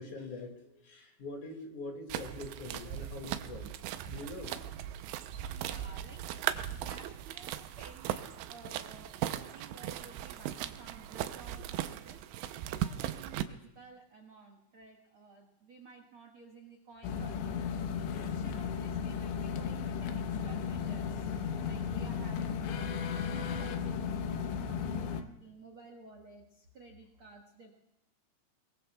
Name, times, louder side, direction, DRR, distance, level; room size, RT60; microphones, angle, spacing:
voice 1, 0.0-3.7 4.0-4.6 5.3-5.7, left 2 dB, 50° left, 2 dB, 3.2 m, -44 dB
sound 1, 2.1-13.4, right 12 dB, 85° right, 3.0 m, -38 dB
voice 2, 5.5-12.2 12.7-17.7 18.2-22.9 23.3-27.7, right 3 dB, 60° right, 0 dB, 1.3 m, -54 dB
sound 2, 17.0-25.2, left 6 dB, 90° left, 3.3 m, -35 dB
29.0 x 21.5 x 2.3 m, 0.89 s
omnidirectional pair, 5.0 m